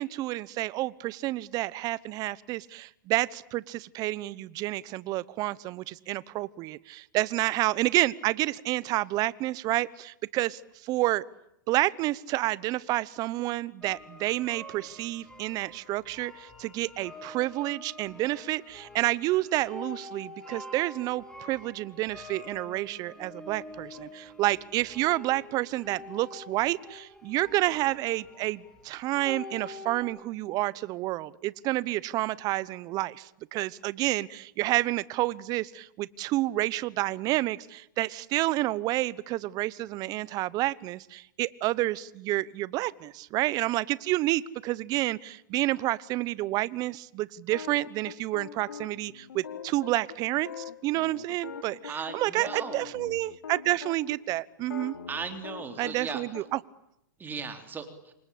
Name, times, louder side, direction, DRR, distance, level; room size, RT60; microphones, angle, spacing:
voice 1, 0.0-11.2 11.7-54.9 55.8-56.6, right 17 dB, 35° right, 21 dB, 1.0 m, -29 dB
sound 1, 13.8-30.0, left 1 dB, 5° left, 6.1 m, -46 dB
sound 2, 47.5-54.2 54.6-56.4, left 6 dB, 90° left, 3.1 m, -42 dB
voice 2, 51.9-52.9 55.1-56.2 57.2-58.1, right 5 dB, 15° right, 7 dB, 3.7 m, -37 dB
28.0 x 24.5 x 8.6 m, 0.80 s
hypercardioid pair, 125°, 11 cm